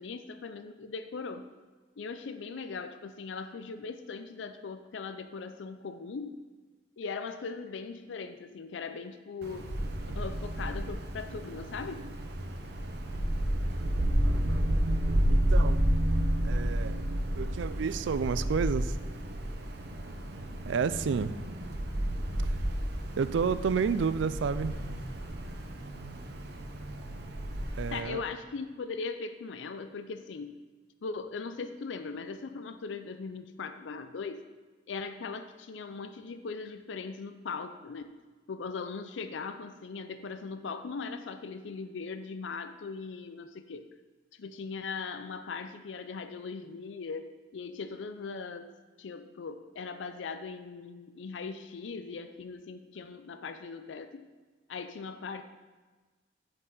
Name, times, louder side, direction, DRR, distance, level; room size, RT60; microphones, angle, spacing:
voice 1, 0.0-1.5 2.0-6.4 7.0-9.7 10.2-12.1 27.9-30.6 31.0-34.5 34.9-38.2 38.5-43.9 44.3-48.7 49.0-54.3 54.7-55.4, left 4 dB, 80° left, 9 dB, 0.5 m, -39 dB
Wind, 9.4-28.0, right 1 dB, 60° right, 0.8 m, -31 dB
voice 2, 14.2-14.6 15.3-15.9 16.4-17.0 17.4-19.0 20.7-21.4 22.4-22.6 23.2-24.7 27.8-28.2, right 6 dB, 80° right, 14 dB, 0.4 m, -30 dB
8.4 x 6.6 x 3.8 m, 1.3 s
head